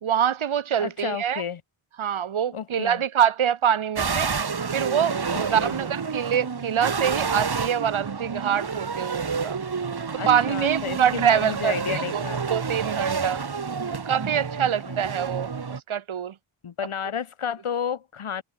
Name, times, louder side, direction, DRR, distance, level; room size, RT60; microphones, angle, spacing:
voice 1, 0.0-1.4 2.0-4.3 4.7-9.6 10.3-12.2 12.5-13.4 14.1-16.4, right 8 dB, 75° right, 1.7 m, -25 dB
voice 2, 0.8-1.6 2.5-3.0 5.3-5.8 10.2-12.4 14.6-15.0 16.6-18.4, left 7 dB, 85° left, 3.3 m, -32 dB
sound 1, 4.0-15.8, right 5 dB, 50° right, 7.7 m, -29 dB
wide cardioid pair, 170°, 49 cm